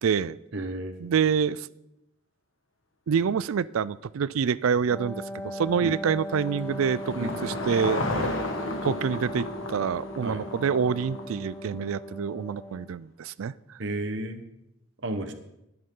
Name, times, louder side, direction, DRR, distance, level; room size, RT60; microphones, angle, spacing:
voice 1, 0.0-0.4 1.0-1.7 3.1-8.0 8.8-13.8, right 7 dB, 75° right, 19 dB, 0.4 m, -27 dB
voice 2, 0.5-0.9 5.8-6.0 7.2-7.4 8.1-8.3 10.2-10.4 13.8-14.5 15.0-15.3, right 1 dB, 55° right, 7 dB, 1.0 m, -32 dB
Wind instrument woodwind instrument, 4.9-12.9, equal, 15° left, 0.3 m, -39 dB
Car passing by / Engine, 5.4-11.8, left 2 dB, 70° left, 1.4 m, -34 dB
21.0 x 7.9 x 3.8 m, 0.86 s
head